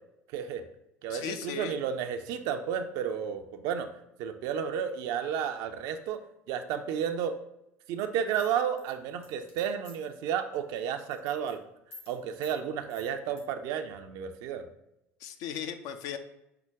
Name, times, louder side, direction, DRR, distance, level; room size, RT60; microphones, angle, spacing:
voice 1, 0.3-0.6 1.0-3.9 4.2-6.2 6.5-7.4 7.9-11.6 12.1-14.7, right 8 dB, 60° right, 7 dB, 0.4 m, -32 dB
voice 2, 1.1-1.8 15.2-16.2, left 9 dB, 60° left, 8 dB, 0.4 m, -37 dB
sound 1, 8.3-10.2 10.5-10.8 11.0-11.5 11.9-12.1 12.4-12.6 12.9-13.4, left 2 dB, 85° left, 1.1 m, -50 dB
5.7 x 2.2 x 3.4 m, 0.85 s
hypercardioid pair, 65°, 7 cm